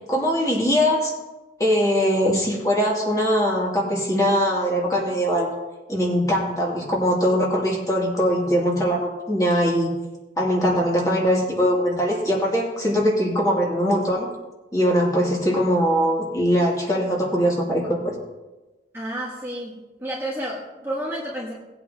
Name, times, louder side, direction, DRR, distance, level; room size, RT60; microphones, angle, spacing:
voice 1, 0.1-1.1 1.6-5.5 5.9-9.9 10.4-14.3 14.7-18.1, equal, 20° left, -3 dB, 2.5 m, -21 dB
voice 2, 18.9-21.5, right 1 dB, 15° right, -4 dB, 1.3 m, -31 dB
18.5 x 8.5 x 2.8 m, 1.1 s
head